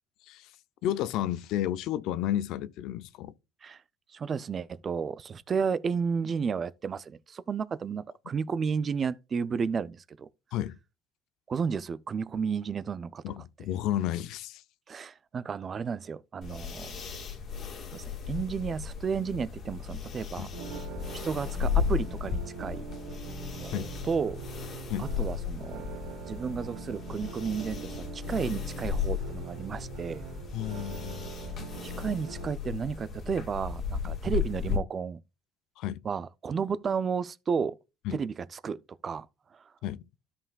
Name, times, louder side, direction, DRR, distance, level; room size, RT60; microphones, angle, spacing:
voice 1, 0.8-3.3 10.5-10.8 13.2-14.6 20.4-20.5 23.7-23.9 24.9-25.1 30.5-31.3 35.8-36.0 38.1-38.2 39.8-40.0, left 12 dB, 65° left, 0.5 m, -32 dB
voice 2, 4.1-10.3 11.5-13.2 14.9-16.9 17.9-20.5 21.2-22.8 23.6-24.7 25.0-25.9 26.3-30.2 31.8-35.2 36.0-37.8 38.1-38.8 39.0-39.3 39.5-39.6, right 6 dB, 30° right, 0.4 m, -32 dB
sound 1, 16.4-34.8, left 7 dB, 40° left, 1.9 m, -35 dB
sound 2, 20.5-32.5, right 6 dB, 75° right, 1.1 m, -43 dB
13.0 x 5.6 x 2.3 m
cardioid pair, 135°, 0 cm